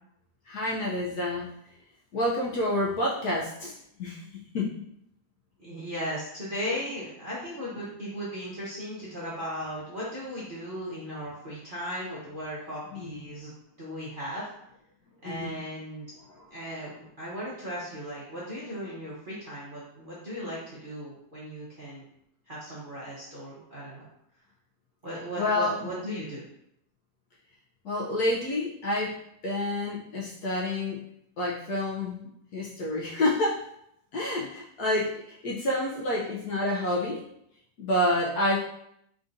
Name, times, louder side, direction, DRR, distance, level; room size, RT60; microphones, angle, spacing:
voice 1, 0.5-1.5 2.1-3.7 4.0-4.8 12.9-13.2 15.2-15.6 25.4-25.9 27.8-29.2 29.4-31.0 31.4-33.7 34.1-37.2 37.8-38.6, left 1 dB, 65° left, -4 dB, 1.0 m, -28 dB
voice 2, 5.6-13.5 13.8-14.5 15.2-16.1 16.5-22.0 22.5-24.1 25.0-26.4, equal, 40° right, -9 dB, 0.8 m, -37 dB
3.8 x 3.7 x 2.6 m, 0.75 s
omnidirectional pair, 2.1 m